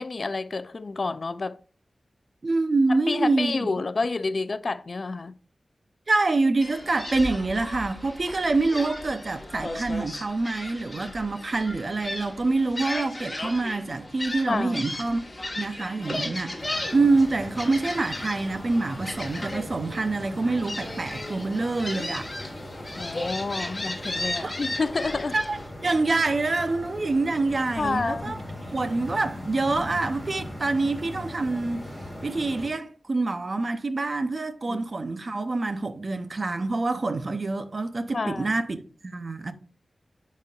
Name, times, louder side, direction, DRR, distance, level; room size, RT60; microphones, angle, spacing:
voice 1, 0.0-1.6 2.9-5.3 11.0-11.1 14.5-14.8 23.0-25.4 27.8-28.4 34.7-34.8 38.1-38.5, left 3 dB, 55° left, 0.4 m, -29 dB
voice 2, 2.4-3.7 6.1-15.2 15.6-16.5 16.9-22.3 24.4-24.5 25.3-28.4 28.7-31.8 32.2-39.5, right 3 dB, 50° right, 0.6 m, -26 dB
Gull seagull, 6.6-25.7, left 1 dB, 30° left, 1.3 m, -36 dB
sound 1, 16.6-32.7, left 1 dB, 10° left, 3.6 m, -39 dB
10.0 x 4.2 x 2.4 m
wide cardioid pair, 100°, 0 cm